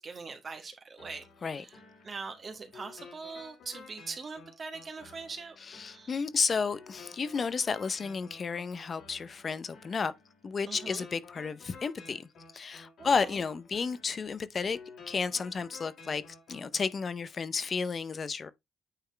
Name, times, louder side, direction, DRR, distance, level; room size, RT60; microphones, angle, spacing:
voice 1, 0.0-1.8 2.0-5.6 5.9-6.1 10.7-11.0 13.0-13.4, right 4 dB, 40° right, 1.4 m, -42 dB
sound 1, 1.0-17.0, left 4 dB, 70° left, 3.9 m, -53 dB
voice 2, 5.6-10.1 10.4-14.8 15.1-16.2 16.5-18.5, left 5 dB, 45° left, 0.7 m, -32 dB
9.1 x 3.6 x 3.3 m
cardioid pair, 85°, 0 cm